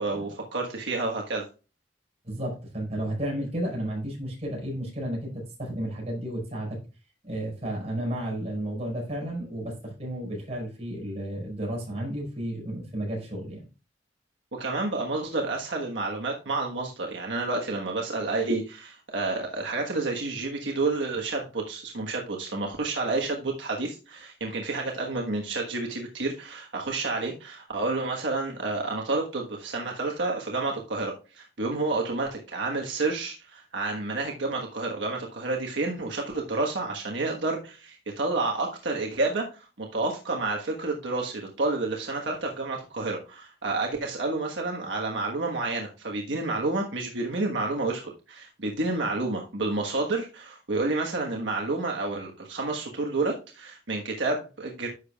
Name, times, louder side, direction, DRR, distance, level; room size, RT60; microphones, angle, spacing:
voice 1, 0.0-1.5 14.5-54.9, right 3 dB, 80° right, 1 dB, 1.4 m, -30 dB
voice 2, 2.2-6.8 7.2-13.7, right 1 dB, 35° right, -1 dB, 5.2 m, -32 dB
10.5 x 6.8 x 2.3 m, 0.32 s
head